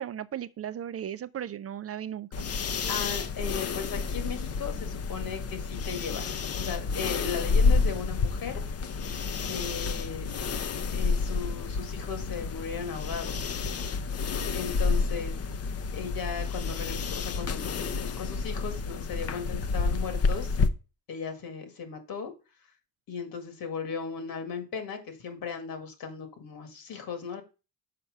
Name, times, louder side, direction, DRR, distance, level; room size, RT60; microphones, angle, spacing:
voice 1, 0.0-2.5, right 10 dB, 45° right, 0.4 m, -36 dB
sound 1, 2.3-20.7, left 4 dB, 45° left, 0.6 m, -29 dB
voice 2, 2.9-6.3 6.6-8.6 9.5-10.3 10.9-13.7 14.5-15.3 15.9-20.5 21.1-22.3 23.1-27.4, left 6 dB, 70° left, 2.0 m, -37 dB
5.9 x 4.7 x 6.4 m
cardioid pair, 110°, 36 cm